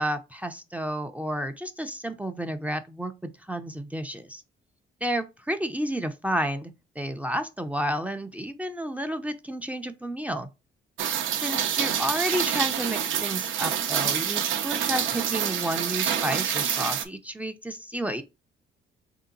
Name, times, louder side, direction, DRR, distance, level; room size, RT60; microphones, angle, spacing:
voice 1, 0.0-4.4 5.0-10.5 11.4-18.2, equal, 5° right, 0.6 m, -31 dB
Rain, 11.0-17.0, right 9 dB, 70° right, 0.7 m, -27 dB
3.4 x 2.8 x 3.8 m
supercardioid pair, 65°, 21 cm